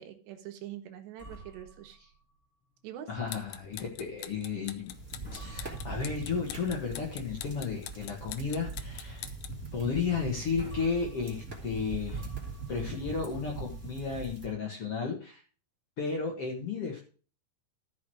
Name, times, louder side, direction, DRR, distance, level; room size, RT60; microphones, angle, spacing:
voice 1, 0.0-2.0 2.8-3.1, right 11 dB, 85° right, 5 dB, 3.5 m, -44 dB
sound 1, 1.2-3.0 3.3-3.5 4.0-4.2 4.8-5.0 5.2-6.6 7.0-7.9 8.3-8.4 8.9-9.1 9.3-9.4 10.1-10.2 10.4-14.1, right 1 dB, ahead, 3.7 m, -51 dB
voice 2, 3.1-4.9 5.3-9.3 9.7-12.3 12.7-15.4 16.0-17.0, left 5 dB, 50° left, -1 dB, 1.8 m, -33 dB
sound 2, 3.2-9.6, left 13 dB, 75° left, 2.3 m, -45 dB
sound 3, 4.9-14.5, right 4 dB, 20° right, 2.4 m, -41 dB
13.5 x 6.3 x 4.8 m, 0.39 s
omnidirectional pair, 4.9 m